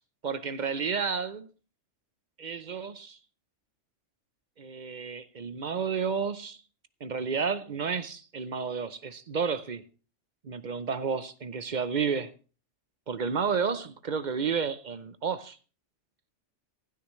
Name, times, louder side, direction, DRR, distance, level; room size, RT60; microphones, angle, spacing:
voice 1, 0.2-1.5 2.4-3.2 4.6-6.6 7.0-9.8 10.4-12.3 13.1-15.6, right 6 dB, 45° right, 0.7 m, -31 dB
16.0 x 12.0 x 3.1 m
omnidirectional pair, 1.3 m